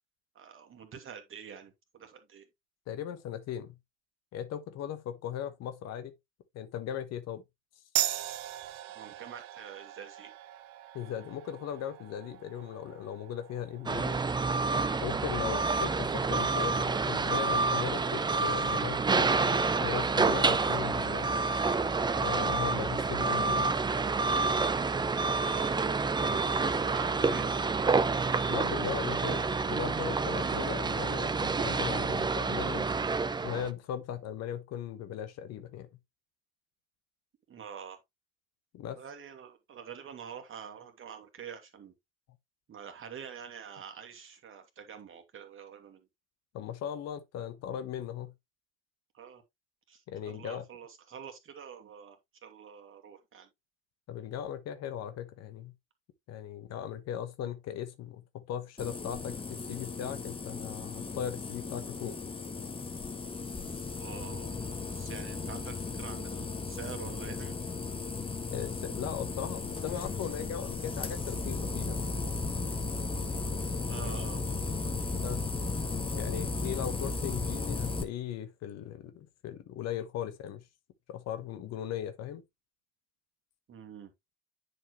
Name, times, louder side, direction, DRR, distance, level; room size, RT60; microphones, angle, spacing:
voice 1, 0.3-2.5 8.9-10.3 25.4-27.6 37.5-38.0 38.9-41.9 42.7-46.1 49.1-49.4 49.9-53.5 64.0-67.5 73.8-74.4 75.8-75.9 83.7-84.1, right 7 dB, 35° right, 2.4 m, -46 dB
voice 2, 2.9-3.8 4.3-6.1 6.5-7.4 10.9-14.2 15.0-21.3 22.1-23.7 28.5-32.9 33.4-35.9 38.7-39.0 46.5-48.3 50.1-50.6 54.1-55.7 56.3-62.1 68.5-72.0 75.1-75.4 76.2-80.6 81.1-82.4, left 9 dB, 50° left, 1.2 m, -38 dB
sound 1, 8.0-15.0, right 14 dB, 60° right, 1.0 m, -39 dB
sound 2, 13.9-33.7, right 4 dB, 15° right, 0.6 m, -28 dB
sound 3, 58.8-78.0, left 3 dB, 15° left, 1.4 m, -35 dB
10.0 x 4.6 x 3.1 m
figure-of-eight pair, 65°, 34 cm